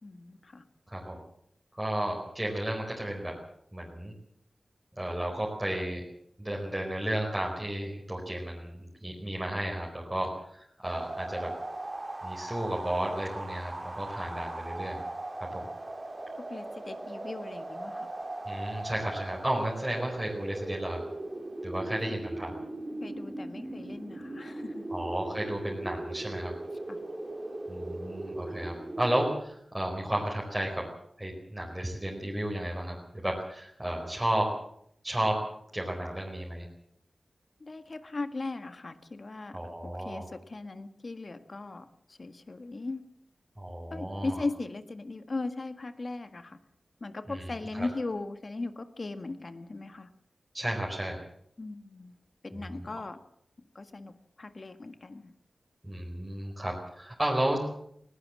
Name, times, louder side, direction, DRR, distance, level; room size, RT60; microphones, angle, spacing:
voice 1, 0.0-0.6 16.5-18.1 22.1-22.2 23.0-24.9 26.9-27.0 37.6-41.9 42.2-43.0 43.9-46.6 47.0-50.1 51.6-52.1 52.4-53.2 53.7-54.1 54.4-55.3, left 3 dB, 45° left, 10 dB, 1.7 m, -38 dB
voice 2, 0.9-1.2 1.8-3.3 3.7-4.1 4.9-6.0 6.4-11.5 12.2-15.0 15.4-15.6 18.5-21.0 21.6-22.5 24.9-26.5 27.7-30.8 31.2-34.5 35.0-35.4 35.7-36.7 39.5-40.3 43.6-44.4 47.3-47.9 50.5-51.2 52.5-52.9 55.8-57.6, right 1 dB, 10° right, -2 dB, 4.7 m, -33 dB
sound 1, 10.8-29.4, right 2 dB, 30° right, 3.7 m, -39 dB
20.0 x 18.0 x 7.6 m, 0.70 s
wide cardioid pair, 85°, 0 cm